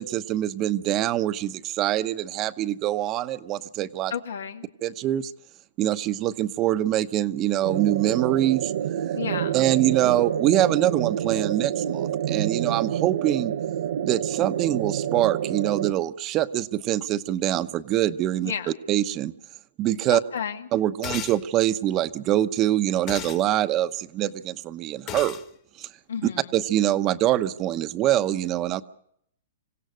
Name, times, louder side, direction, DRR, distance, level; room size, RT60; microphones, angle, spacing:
voice 1, 0.0-4.1 4.8-5.3 5.8-8.7 9.5-13.5 14.0-18.5 18.9-19.3 19.8-20.2 20.7-25.4 25.8-25.9 26.5-28.8, right 13 dB, 30° right, 11 dB, 0.9 m, -24 dB
voice 2, 4.1-4.7 9.1-9.6 18.4-18.7 20.1-20.7 26.1-26.4, left 7 dB, 85° left, 6 dB, 2.0 m, -31 dB
sound 1, 7.6-15.9, right 10 dB, 70° right, 0.7 m, -28 dB
sound 2, 21.0-21.4 23.1-23.4 25.1-25.4, left 12 dB, 30° left, 1.6 m, -34 dB
26.5 x 17.0 x 6.4 m, 0.69 s
hypercardioid pair, 145°, 0 cm